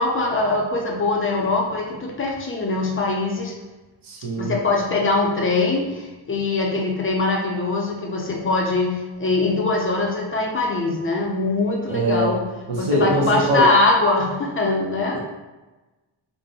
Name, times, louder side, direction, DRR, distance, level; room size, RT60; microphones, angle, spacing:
voice 1, 0.0-3.5 4.4-12.4 12.7-15.2, left 3 dB, 30° left, -1 dB, 0.4 m, -22 dB
voice 2, 4.1-4.5 11.9-12.3 12.7-13.7 15.1-15.2, right 1 dB, 85° right, -2 dB, 0.7 m, -22 dB
2.5 x 2.0 x 2.6 m, 1.1 s
wide cardioid pair, 140°, 47 cm